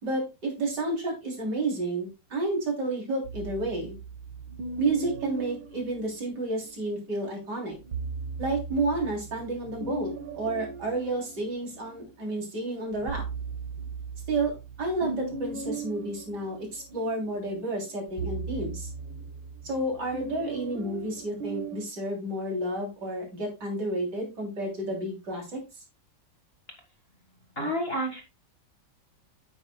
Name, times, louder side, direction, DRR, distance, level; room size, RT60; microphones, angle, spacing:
voice 1, 0.0-4.0 4.8-7.8 8.4-13.2 14.3-18.9 19.6-25.6, right 2 dB, 65° right, -1 dB, 4.0 m, -31 dB
sound 1, 3.2-6.7 7.7-12.1 12.6-21.9, right 4 dB, 85° right, 1.9 m, -38 dB
voice 2, 27.6-28.2, equal, 35° left, 3 dB, 1.9 m, -29 dB
9.6 x 8.9 x 2.2 m, 0.25 s
omnidirectional pair, 2.0 m